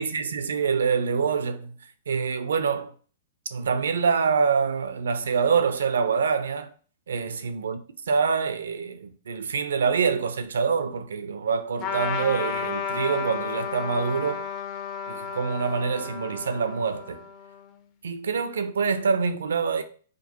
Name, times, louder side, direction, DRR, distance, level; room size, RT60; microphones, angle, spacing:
voice 1, 0.0-1.7 2.1-2.9 3.5-6.7 7.1-7.8 8.1-14.5 15.1-17.2 18.0-19.8, right 5 dB, 85° right, 0.5 m, -25 dB
Trumpet, 11.8-17.7, left 6 dB, 30° left, 0.5 m, -32 dB
5.0 x 2.1 x 2.9 m
hypercardioid pair, 140°, 0 cm